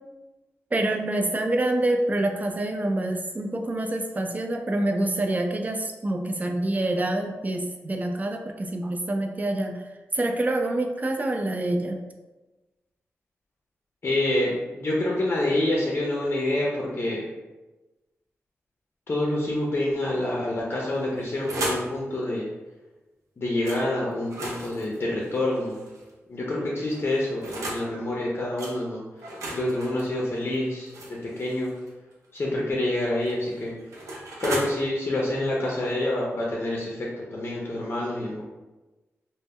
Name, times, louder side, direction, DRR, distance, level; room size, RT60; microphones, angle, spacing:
voice 1, 0.7-9.8 10.1-12.0, right 1 dB, 30° right, 4 dB, 0.4 m, -26 dB
voice 2, 14.0-17.3 19.1-22.5 23.4-25.8 26.3-29.0 29.5-31.7 32.3-33.7 34.4-38.4, left 1 dB, 45° left, -3 dB, 0.5 m, -27 dB
sound 1, 20.9-21.9 23.6-23.8 24.2-26.1 26.9-27.9 28.6-28.8 29.2-31.9 33.0-34.7, right 1 dB, 90° right, 0.5 m, -35 dB
2.0 x 2.0 x 3.5 m, 1.1 s
cardioid pair, 65°, 5 cm